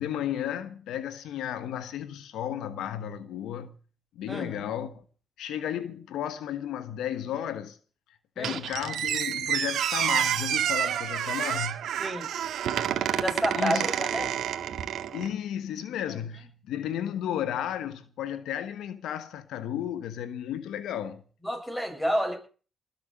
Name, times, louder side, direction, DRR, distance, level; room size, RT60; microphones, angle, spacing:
voice 1, 0.0-3.7 4.2-4.9 5.4-7.8 8.4-11.8 13.5-13.9 15.1-21.2, left 10 dB, 80° left, 1.3 m, -33 dB
Squeak, 8.4-15.3, right 10 dB, 75° right, 2.0 m, -29 dB
voice 2, 13.2-14.3 21.4-22.4, equal, 5° left, 7.9 m, -29 dB
20.5 x 7.7 x 7.9 m
cardioid pair, 90°, 0 cm